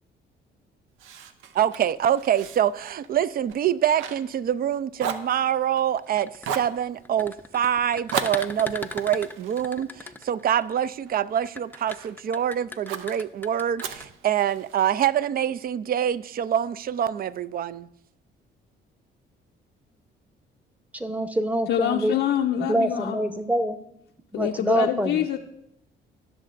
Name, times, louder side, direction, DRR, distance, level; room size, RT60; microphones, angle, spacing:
Fire, 1.0-4.7 5.0-6.0 6.4-6.8 8.1-10.5 11.0-12.2 12.9-13.2 13.8-14.9, right 7 dB, 90° right, 0.6 m, -35 dB
voice 1, 1.6-17.9, right 10 dB, 50° right, 0.4 m, -25 dB
sound 1, 6.1-10.7 11.4-14.0, left 2 dB, 10° left, 0.5 m, -38 dB
voice 2, 20.9-22.2 22.7-23.8 24.3-25.3, right 1 dB, 5° right, 0.8 m, -25 dB
voice 3, 21.7-23.2 24.3-25.4, left 10 dB, 80° left, 0.6 m, -25 dB
19.0 x 6.5 x 2.5 m
cardioid pair, 90°, 20 cm